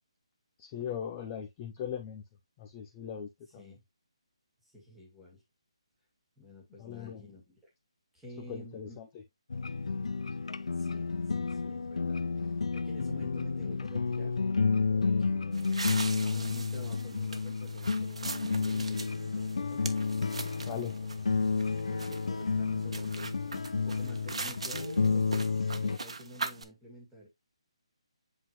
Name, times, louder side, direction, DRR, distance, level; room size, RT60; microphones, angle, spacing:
voice 1, 0.6-2.2 2.6-3.6 6.8-7.2 8.4-9.1 20.4-21.0, left 8 dB, 15° left, 0.6 m, -39 dB
voice 2, 4.6-5.4 6.4-7.6 8.1-9.0 10.7-14.4 14.9-19.9 21.9-23.4 23.7-27.3, left 1 dB, 5° right, 2.0 m, -49 dB
sound 1, 9.5-26.0, left 4 dB, 75° left, 0.5 m, -31 dB
sound 2, 15.5-26.6, right 3 dB, 70° right, 1.3 m, -42 dB
8.1 x 3.9 x 3.1 m
hypercardioid pair, 175°, 3 cm